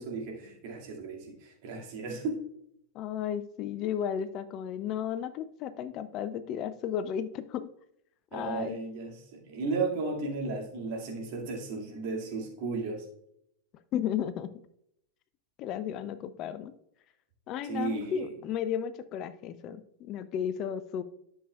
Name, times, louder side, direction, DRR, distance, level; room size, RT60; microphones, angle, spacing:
voice 1, 0.0-2.4 8.3-13.1 17.6-18.3, right 3 dB, 45° right, 0 dB, 2.1 m, -34 dB
voice 2, 2.9-7.7 8.3-8.8 13.9-14.5 15.6-16.7 17.5-21.0, left 9 dB, 35° left, 13 dB, 0.4 m, -34 dB
11.5 x 6.5 x 2.3 m, 0.74 s
figure-of-eight pair, 90°, 0 cm